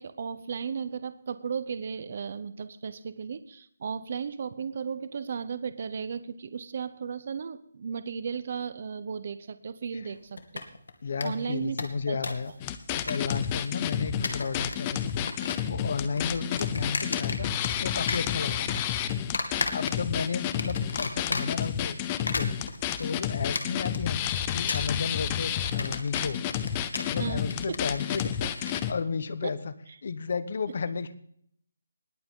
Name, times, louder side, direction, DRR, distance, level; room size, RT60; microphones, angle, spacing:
voice 1, 0.0-10.6 11.2-11.8 12.1-12.2 27.2-27.8 29.4-29.5, right 6 dB, 35° right, 13 dB, 0.7 m, -35 dB
sound 1, 10.4-10.9 11.2-11.3 11.6-12.5 12.7-13.6 14.1-14.8 15.1-15.7 16.0-17.8 18.1-18.8 19.3-20.2 20.6-21.7 22.1-28.8, left 3 dB, 90° left, 2.2 m, -34 dB
voice 2, 11.0-12.5 12.9-15.3 15.6-17.5 17.8-18.9 19.7-24.2 24.5-26.4 26.9-29.7 30.0-31.1, left 5 dB, 40° left, 15 dB, 1.0 m, -33 dB
sound 2, 12.6-28.9, left 10 dB, 15° left, 0.5 m, -30 dB
20.0 x 8.7 x 3.7 m, 0.64 s
hypercardioid pair, 180°, 0 cm